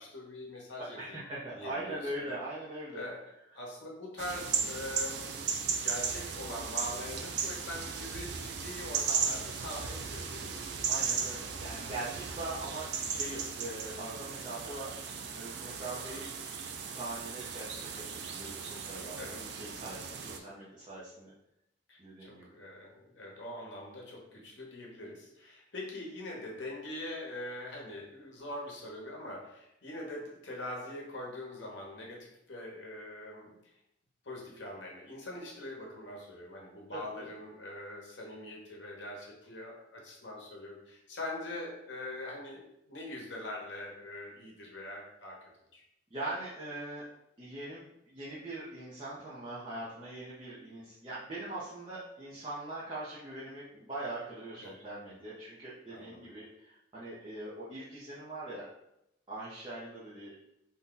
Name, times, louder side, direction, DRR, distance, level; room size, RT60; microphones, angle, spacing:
voice 1, 0.0-1.3 1.5-2.0 2.9-3.2 3.5-10.5 19.2-19.6 20.2-20.5 21.9-33.6 34.2-45.8 54.5-54.8 55.9-56.3, left 1 dB, 70° left, -1 dB, 0.8 m, -43 dB
voice 2, 1.0-3.1 10.9-14.9 15.3-16.3 16.9-21.3 22.0-22.5 36.9-37.3 46.1-47.0 47.4-58.7 59.3-60.4, right 2 dB, 25° right, -9 dB, 0.6 m, -42 dB
sound 1, 4.2-20.4, right 6 dB, 60° right, 0.4 m, -36 dB
2.7 x 2.2 x 3.7 m, 0.83 s
head